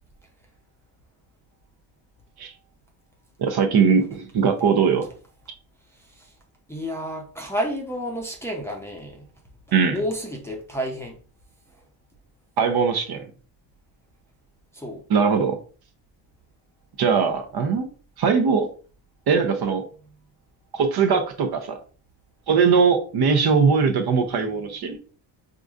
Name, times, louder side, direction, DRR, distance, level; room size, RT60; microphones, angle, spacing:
voice 1, 3.4-5.1 9.7-10.0 12.6-13.2 15.1-15.6 17.0-17.9 18.2-18.7 19.3-19.8 20.7-21.8 22.5-25.0, right 5 dB, 55° right, 0.8 m, -20 dB
voice 2, 5.9-6.3 6.7-9.3 9.9-11.2 14.7-15.0, equal, 5° left, 0.6 m, -31 dB
4.7 x 2.6 x 2.4 m
cardioid pair, 120°, 47 cm